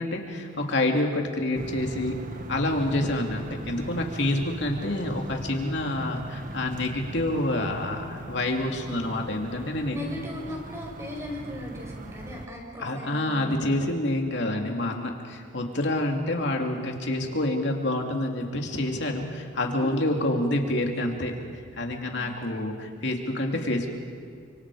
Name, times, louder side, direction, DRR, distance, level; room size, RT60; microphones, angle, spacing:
voice 1, 0.0-2.1 2.5-10.0 12.8-21.3 21.8-23.9, left 1 dB, 65° left, 2 dB, 3.0 m, -27 dB
sound 1, 1.5-12.5, right 1 dB, 45° right, 1.3 m, -39 dB
voice 2, 9.9-13.5 19.8-19.9 22.1-22.6 23.5-23.7, left 1 dB, 15° right, 0 dB, 5.6 m, -38 dB
30.0 x 26.0 x 5.0 m, 2.2 s
head